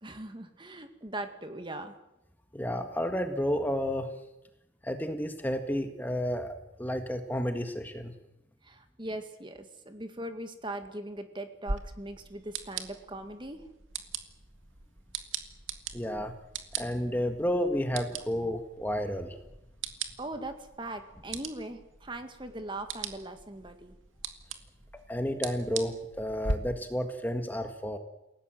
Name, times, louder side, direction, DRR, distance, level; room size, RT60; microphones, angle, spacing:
voice 1, 0.0-1.9 8.6-13.7 20.2-24.0, right 1 dB, 25° right, 7 dB, 2.0 m, -40 dB
voice 2, 2.5-4.1 4.8-6.5 6.8-8.1 15.9-16.3 16.7-19.4 25.1-28.0, equal, 10° left, 6 dB, 1.6 m, -31 dB
sound 1, 11.7-26.5, right 4 dB, 85° right, 2.2 m, -41 dB
28.5 x 17.5 x 7.8 m, 0.93 s
head